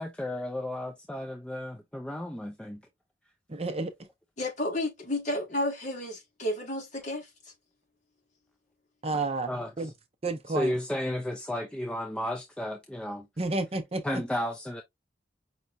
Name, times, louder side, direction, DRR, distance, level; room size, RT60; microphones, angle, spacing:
voice 1, 0.0-2.8 9.5-9.9 10.5-13.3 14.0-14.8, left 1 dB, 5° left, 0.5 m, -33 dB
voice 2, 3.5-3.9 9.0-9.5 9.8-9.9 10.2-10.7 13.4-14.0, right 3 dB, 35° right, 0.6 m, -30 dB
voice 3, 4.4-7.3, left 1 dB, 40° left, 1.7 m, -31 dB
5.5 x 3.0 x 2.5 m
head